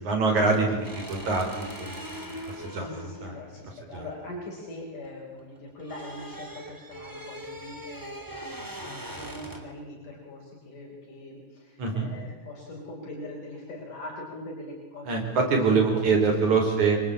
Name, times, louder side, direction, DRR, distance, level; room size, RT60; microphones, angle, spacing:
voice 1, 0.0-3.3 3.9-4.1 11.8-12.1 15.0-17.0, right 4 dB, 60° right, 2 dB, 6.2 m, -25 dB
sound 1, 0.8-5.1 5.4-9.8, equal, 5° right, 2.6 m, -41 dB
voice 2, 2.3-16.9, left 1 dB, 70° left, -1 dB, 6.0 m, -42 dB
26.0 x 24.5 x 8.8 m, 1.2 s
omnidirectional pair, 3.7 m